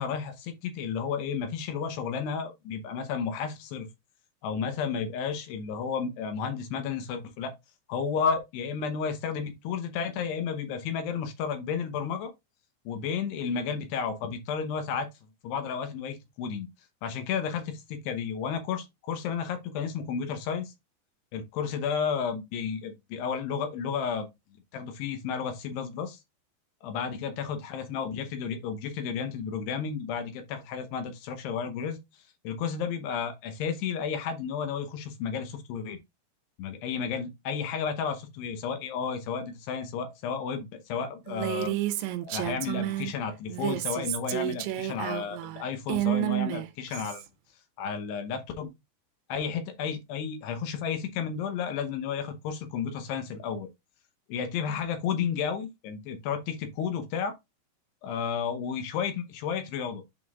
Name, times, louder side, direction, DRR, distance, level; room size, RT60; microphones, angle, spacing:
voice 1, 0.0-3.9 4.4-7.5 7.9-12.3 12.9-15.1 15.4-16.7 17.0-20.7 21.3-24.3 24.7-26.2 26.8-32.0 32.4-36.0 36.6-41.8 42.2-47.2 47.8-48.7 49.3-53.7 54.3-57.3 58.0-60.1, left 6 dB, 75° left, 2.7 m, -32 dB
Female speech woman speaking, 41.3-43.1 43.5-47.3, right 15 dB, 85° right, 3.1 m, -30 dB
11.0 x 3.8 x 2.4 m
omnidirectional pair, 5.2 m